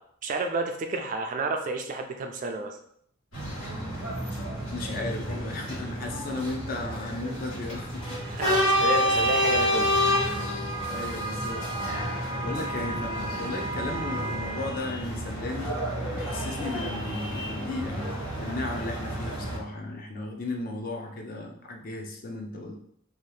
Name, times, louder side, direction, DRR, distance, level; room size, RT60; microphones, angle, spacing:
voice 1, 0.2-2.8 8.3-9.9, right 3 dB, 40° right, 5 dB, 0.3 m, -30 dB
sound 1, 3.3-19.6, equal, 90° left, 1.5 m, -29 dB
voice 2, 4.7-8.2 10.2-10.4 10.9-11.6 12.4-15.7 16.1-22.8, left 2 dB, 45° left, 2 dB, 0.5 m, -35 dB
2.8 x 2.3 x 3.1 m, 0.68 s
head